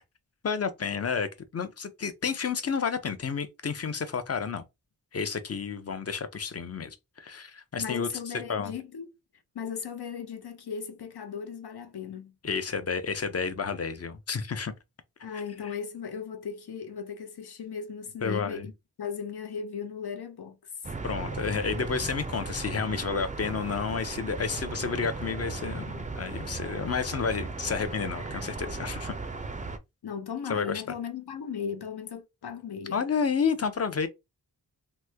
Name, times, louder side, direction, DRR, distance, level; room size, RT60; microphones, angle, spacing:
voice 1, 0.4-4.6 5.1-8.1 8.5-8.7 12.4-14.7 15.3-15.7 18.2-18.7 21.0-29.1 30.5-30.8 32.9-34.1, left 5 dB, 40° left, 0.5 m, -31 dB
voice 2, 7.8-9.1 9.5-12.3 15.2-18.7 19.0-20.7 30.0-33.0, left 7 dB, 75° left, 0.7 m, -37 dB
sound 1, 20.8-29.8, right 3 dB, 20° right, 0.4 m, -36 dB
3.0 x 2.1 x 3.3 m
wide cardioid pair, 95°, 39 cm